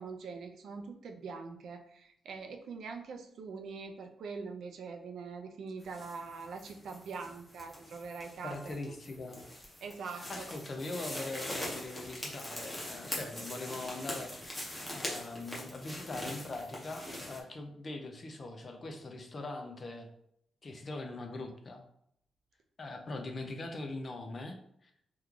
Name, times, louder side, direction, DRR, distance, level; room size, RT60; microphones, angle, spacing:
voice 1, 0.0-8.7 9.8-10.4, right 4 dB, 70° right, 5 dB, 0.4 m, -43 dB
sound 1, 5.8-17.4, left 1 dB, 10° left, 0.8 m, -43 dB
voice 2, 8.4-9.4 10.1-14.6 14.9-20.1 20.6-21.8 22.8-24.6 24.8-24.9, left 2 dB, 35° left, 4 dB, 0.5 m, -41 dB
3.0 x 2.3 x 3.6 m, 0.72 s
wide cardioid pair, 140°, 0 cm